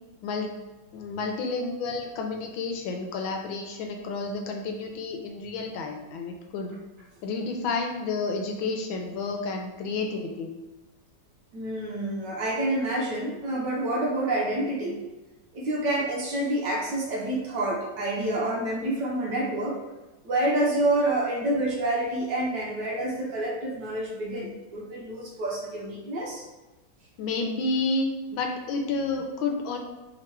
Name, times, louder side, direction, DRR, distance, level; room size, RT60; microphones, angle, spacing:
voice 1, 0.9-6.7 7.2-10.5 27.2-29.8, left 3 dB, 80° left, 3 dB, 1.3 m, -30 dB
voice 2, 11.5-15.0 15.5-19.8 20.2-26.4, right 1 dB, 65° right, -2 dB, 1.2 m, -28 dB
3.5 x 3.0 x 4.4 m, 1.1 s
omnidirectional pair, 2.3 m